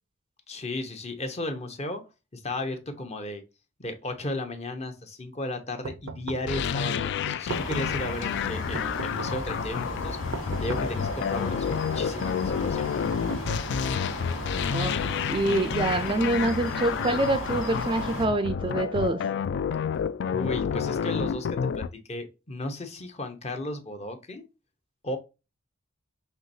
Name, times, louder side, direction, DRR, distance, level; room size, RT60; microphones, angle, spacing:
voice 1, 0.5-2.0 2.3-3.4 3.8-12.9 20.3-24.4 25.0-25.2, left 1 dB, 35° left, 0.8 m, -35 dB
sound 1, 5.8-6.6 7.3-8.0 8.7-9.5 10.3-11.1 11.8-12.4 13.1-14.0, right 4 dB, 90° right, 0.5 m, -39 dB
sound 2, 6.5-21.9, left 7 dB, 60° left, 0.3 m, -30 dB
sound 3, 7.5-18.3, left 1 dB, 80° left, 1.8 m, -35 dB
voice 2, 15.3-19.2, right 2 dB, 25° right, 0.4 m, -26 dB
5.6 x 3.0 x 2.6 m
head